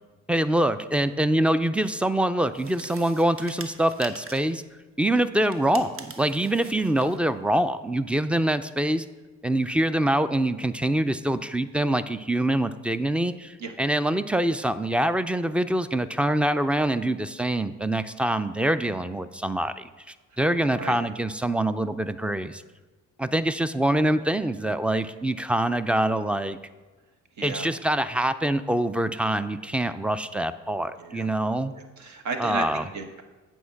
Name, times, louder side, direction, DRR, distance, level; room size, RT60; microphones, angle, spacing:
voice 1, 0.3-4.6 5.0-9.1 9.4-19.9 20.4-22.6 23.2-26.6 27.4-31.7 32.4-32.8, right 1 dB, 5° right, 13 dB, 0.3 m, -25 dB
sound 1, 2.5-4.6 5.4-7.2, right 4 dB, 45° right, 1.0 m, -44 dB
voice 2, 20.6-21.0 27.4-27.7 31.0-31.3 31.7-33.2, right 4 dB, 70° right, 5 dB, 1.2 m, -34 dB
8.6 x 4.5 x 6.9 m, 1.3 s
cardioid pair, 90°, 30 cm